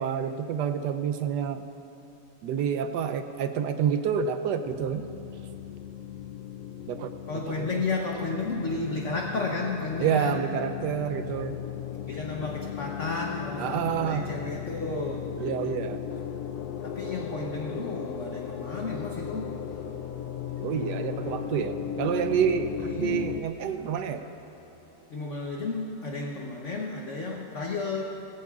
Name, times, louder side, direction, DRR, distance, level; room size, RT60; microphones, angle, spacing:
voice 1, 0.0-1.6 2.4-5.1 6.9-7.1 7.5-7.7 10.0-11.6 13.6-14.3 15.4-16.0 20.6-24.2, right 8 dB, 75° right, 9 dB, 1.0 m, -28 dB
sound 1, 4.6-23.4, left 9 dB, 80° left, 0.8 m, -36 dB
voice 2, 7.3-10.4 12.0-15.3 16.8-19.6 22.8-23.3 25.1-28.0, left 3 dB, 50° left, -1 dB, 1.0 m, -32 dB
sound 2, 19.7-25.6, equal, 15° right, 2.5 m, -54 dB
19.5 x 16.0 x 2.4 m, 2.8 s
omnidirectional pair, 2.2 m